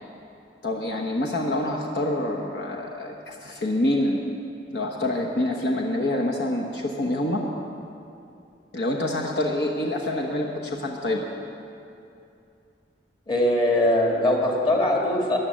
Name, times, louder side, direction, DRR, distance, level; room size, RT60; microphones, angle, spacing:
voice 1, 0.6-4.2 4.7-7.4 8.7-11.3, left 1 dB, 65° left, 0 dB, 1.1 m, -26 dB
voice 2, 13.3-15.4, left 1 dB, 30° left, 0 dB, 2.0 m, -21 dB
13.5 x 10.5 x 7.4 m, 2.7 s
head